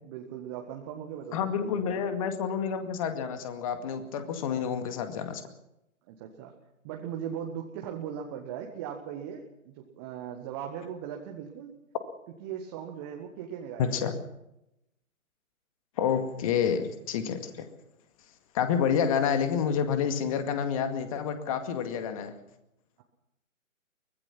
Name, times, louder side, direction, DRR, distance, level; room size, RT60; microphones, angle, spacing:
voice 1, 0.0-2.0 6.1-6.5 6.8-11.7 12.4-14.1, right 8 dB, 20° right, 2 dB, 1.7 m, -39 dB
voice 2, 1.3-5.4 13.8-14.1 16.0-17.7 18.5-22.3, left 7 dB, 25° left, 8 dB, 2.1 m, -29 dB
24.0 x 20.0 x 6.0 m, 0.85 s
figure-of-eight pair, 135°, 41 cm